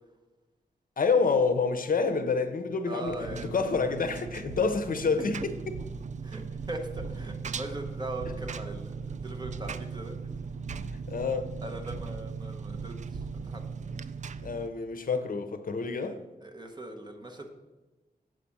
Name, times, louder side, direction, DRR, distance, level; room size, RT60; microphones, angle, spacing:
voice 1, 1.0-5.8 11.1-11.5 14.4-16.2, left 4 dB, 60° left, 0.7 m, -28 dB
voice 2, 2.9-3.6 6.2-6.4 6.7-10.2 11.6-13.8 16.4-17.5, right 1 dB, 25° right, 1.0 m, -40 dB
Engine, 3.1-14.7, right 5 dB, 50° right, 0.4 m, -38 dB
7.6 x 5.0 x 7.0 m
wide cardioid pair, 155°, 16 cm